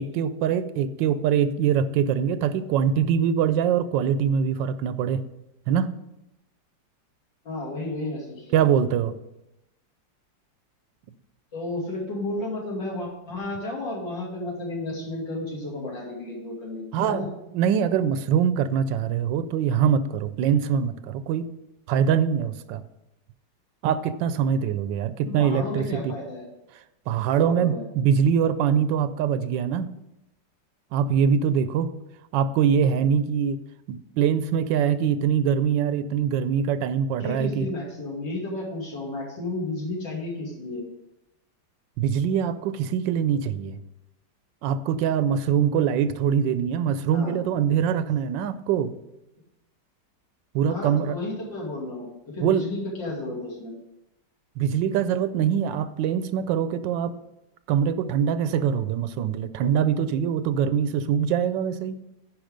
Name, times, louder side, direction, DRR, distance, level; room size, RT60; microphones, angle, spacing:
voice 1, 0.0-5.2 5.7-5.9 8.5-9.1 16.9-17.3 17.5-21.5 21.9-22.8 23.8-26.1 27.1-29.9 30.9-31.9 32.3-33.6 33.9-37.7 42.0-43.8 44.6-48.9 50.5-51.2 52.4-52.7 54.6-57.2 57.7-62.0, right 8 dB, 85° right, 13 dB, 1.3 m, -23 dB
voice 2, 7.4-8.6 11.5-17.3 25.2-26.4 27.4-27.8 37.2-40.8 47.1-47.4 50.7-53.7, left 2 dB, 85° left, -4 dB, 3.2 m, -32 dB
10.5 x 4.9 x 5.0 m, 0.89 s
omnidirectional pair, 2.0 m